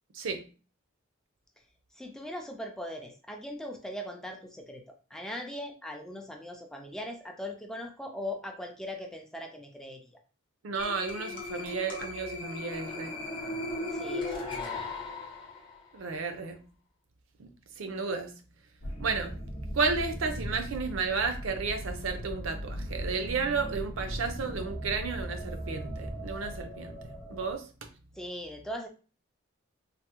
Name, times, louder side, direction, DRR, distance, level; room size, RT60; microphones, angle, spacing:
voice 1, 1.9-10.0 13.9-14.9 28.1-28.9, left 1 dB, 5° left, 3 dB, 0.3 m, -40 dB
voice 2, 10.6-13.1 15.9-16.6 17.4-17.5 17.8-18.3 19.0-19.4 19.7-27.0 27.3-27.6, right 4 dB, 75° right, 8 dB, 0.5 m, -32 dB
sound 1, 10.8-15.8, left 2 dB, 25° left, 0.7 m, -37 dB
sound 2, 18.8-27.6, equal, 80° left, 0.8 m, -38 dB
3.4 x 2.0 x 2.9 m, 0.36 s
head